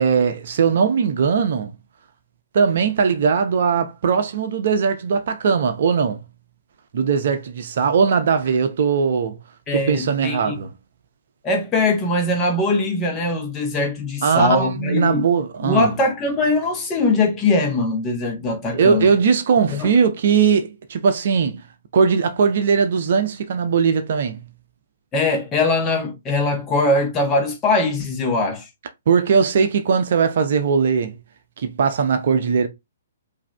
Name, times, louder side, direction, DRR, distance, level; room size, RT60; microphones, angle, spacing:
voice 1, 0.0-1.7 2.5-6.2 6.9-9.4 9.7-10.7 14.2-15.9 18.7-21.6 21.9-24.4 29.1-31.1 31.6-32.7, right 6 dB, 50° right, 0.7 m, -19 dB
voice 2, 9.7-10.5 11.4-15.2 15.6-19.1 19.7-19.9 25.1-28.7, left 2 dB, 20° left, 1.3 m, -21 dB
4.8 x 2.8 x 3.4 m
figure-of-eight pair, 120°, 0 cm